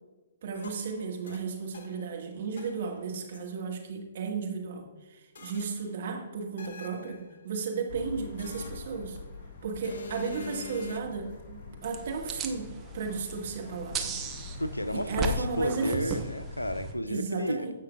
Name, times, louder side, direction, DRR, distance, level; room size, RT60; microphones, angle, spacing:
voice 1, 0.4-9.2 9.6-14.2 14.9-16.1 17.1-17.7, right 5 dB, 50° right, 1 dB, 1.7 m, -34 dB
sound 1, 0.5-2.2 2.6-3.5 5.4-6.0 6.6-7.4 8.4-9.3 9.8-11.0, left 7 dB, 55° left, 0.8 m, -46 dB
sound 2, 7.9-17.0, left 3 dB, 35° left, 1.8 m, -44 dB
sound 3, 11.8-16.9, right 4 dB, 15° right, 0.9 m, -36 dB
voice 2, 14.6-17.7, equal, 90° left, 13 dB, 0.5 m, -32 dB
15.5 x 5.7 x 2.4 m, 1.2 s
figure-of-eight pair, 125°, 0 cm